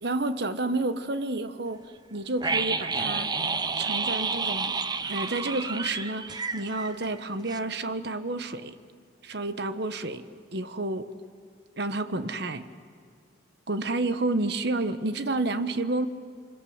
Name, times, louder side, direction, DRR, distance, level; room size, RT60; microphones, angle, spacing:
voice 1, 0.0-1.8 2.1-3.3 3.8-4.7 5.1-8.8 9.2-11.1 11.8-12.7 13.7-16.1, right 2 dB, 55° right, 11 dB, 1.2 m, -30 dB
sound 1, 2.4-7.2 7.5-7.6, right 4 dB, 20° right, 0.8 m, -30 dB
27.0 x 25.0 x 8.0 m, 2.1 s
head